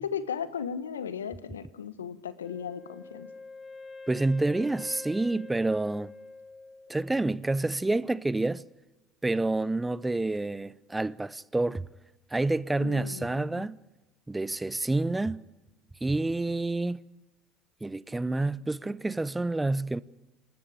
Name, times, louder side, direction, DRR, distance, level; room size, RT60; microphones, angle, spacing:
voice 1, 0.0-3.3 12.8-13.6, left 7 dB, 90° left, 1.2 m, -36 dB
Wind instrument woodwind instrument, 2.4-7.3, left 3 dB, 15° left, 2.7 m, -46 dB
voice 2, 4.1-6.1 6.9-8.6 9.2-11.8 12.3-13.8 14.3-15.4 16.0-17.0 17.8-20.0, right 2 dB, 15° right, 0.8 m, -28 dB
27.5 x 13.0 x 10.0 m
hypercardioid pair, 65°, 0 cm